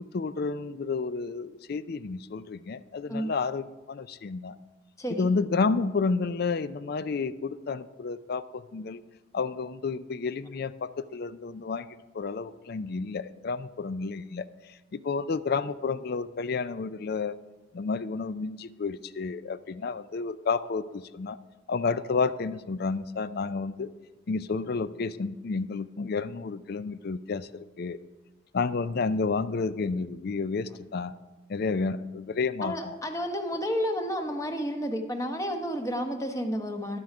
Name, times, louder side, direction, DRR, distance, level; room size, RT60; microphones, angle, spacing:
voice 1, 0.0-4.6 5.2-9.0 9.3-14.5 14.9-17.4 17.7-21.4 21.7-23.9 24.3-28.0 28.5-31.1 31.5-33.0, left 4 dB, 55° left, 15 dB, 0.4 m, -31 dB
voice 2, 5.0-5.3 32.6-37.0, equal, 15° left, 5 dB, 0.9 m, -31 dB
11.5 x 7.8 x 4.8 m, 1.2 s
head